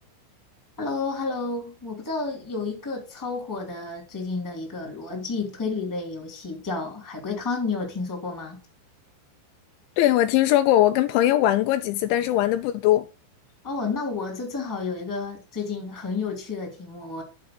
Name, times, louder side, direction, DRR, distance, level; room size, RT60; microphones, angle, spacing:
voice 1, 0.8-8.6 13.6-17.2, left 4 dB, 5° left, 1.6 m, -31 dB
voice 2, 10.0-13.1, left 13 dB, 85° left, 2.7 m, -20 dB
10.5 x 5.1 x 5.8 m
omnidirectional pair, 5.9 m